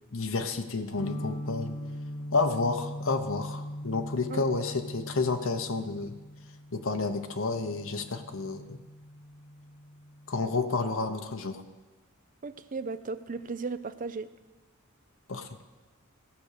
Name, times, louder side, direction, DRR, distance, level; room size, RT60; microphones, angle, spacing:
voice 1, 0.1-1.8 2.3-6.2 6.7-8.8 10.3-11.6 15.3-15.5, left 3 dB, 65° left, 6 dB, 0.9 m, -30 dB
sound 1, 1.0-10.7, equal, 90° left, 1.4 m, -41 dB
voice 2, 4.3-4.6 12.4-14.3, right 4 dB, 40° right, 12 dB, 0.5 m, -36 dB
15.5 x 6.1 x 6.7 m, 1.2 s
head